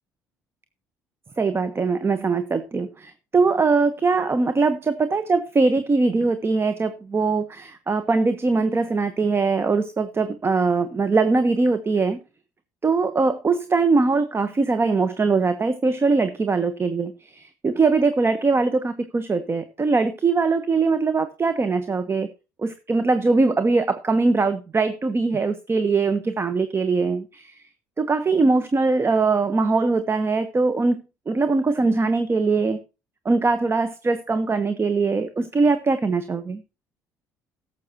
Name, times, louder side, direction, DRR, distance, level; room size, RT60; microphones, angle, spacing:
voice 1, 1.4-12.2 12.8-22.3 22.6-27.6 28.0-31.0 31.3-32.8 33.2-36.6, right 4 dB, 25° right, 11 dB, 1.0 m, -21 dB
17.5 x 7.6 x 2.9 m, 0.30 s
figure-of-eight pair, 55°, 9 cm